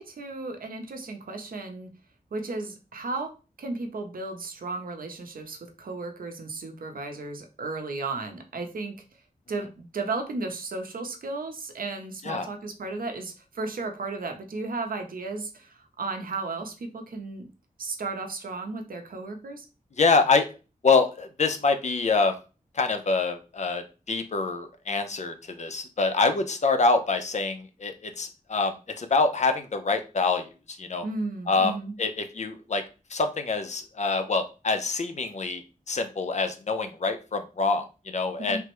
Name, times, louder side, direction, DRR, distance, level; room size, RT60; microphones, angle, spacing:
voice 1, 0.0-1.9 2.3-8.9 9.5-17.5 17.8-19.7 31.0-31.9 38.4-38.6, right 3 dB, 80° right, 5 dB, 0.6 m, -34 dB
voice 2, 20.0-20.5 20.8-22.4 22.7-31.0 31.5-32.8 33.1-38.6, left 4 dB, 55° left, 7 dB, 0.5 m, -26 dB
3.4 x 2.0 x 2.9 m, 0.32 s
wide cardioid pair, 70°, 15 cm